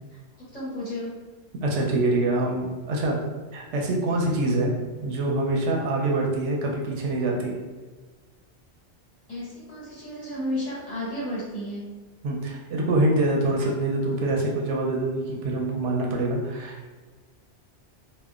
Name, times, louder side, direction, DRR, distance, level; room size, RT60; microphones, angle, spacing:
voice 1, 0.4-1.2 9.3-11.8, left 1 dB, 35° left, -8 dB, 0.8 m, -32 dB
voice 2, 1.6-3.2 3.5-4.7 5.0-7.6 12.2-16.9, right 2 dB, 85° right, -1 dB, 0.9 m, -25 dB
2.7 x 2.1 x 2.3 m, 1.3 s
omnidirectional pair, 1.2 m